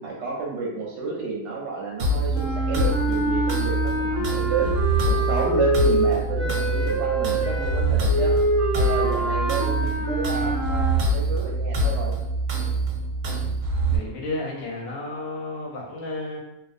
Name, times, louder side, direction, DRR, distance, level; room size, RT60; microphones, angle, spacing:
voice 1, 0.0-4.7 5.0-8.3 8.7-12.2, right 4 dB, 65° right, -3 dB, 0.8 m, -30 dB
sound 1, 2.0-14.0, right 2 dB, 90° right, 1.1 m, -25 dB
sound 2, 2.3-11.0, right 1 dB, 35° left, 0.6 m, -26 dB
voice 2, 13.9-16.4, left 2 dB, 70° left, -2 dB, 0.9 m, -32 dB
2.4 x 2.1 x 2.4 m, 0.84 s
omnidirectional pair, 1.5 m